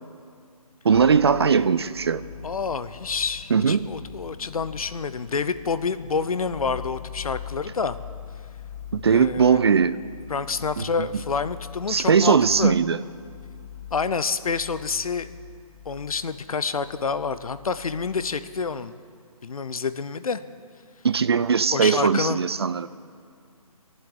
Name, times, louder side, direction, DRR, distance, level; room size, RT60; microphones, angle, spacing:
voice 1, 0.8-2.2 3.5-3.9 8.9-10.0 10.8-10.9 11.9-13.0 21.0-22.9, right 6 dB, 45° right, 15 dB, 0.4 m, -20 dB
sound 1, 0.9-18.8, left 8 dB, 25° left, 0.4 m, -43 dB
voice 2, 2.4-8.0 9.1-9.6 10.3-12.7 13.9-15.3 15.8-19.0 19.4-20.4 21.7-22.4, left 5 dB, 70° left, 13 dB, 0.8 m, -28 dB
17.0 x 7.8 x 10.0 m, 2.3 s
hypercardioid pair, 165°, 19 cm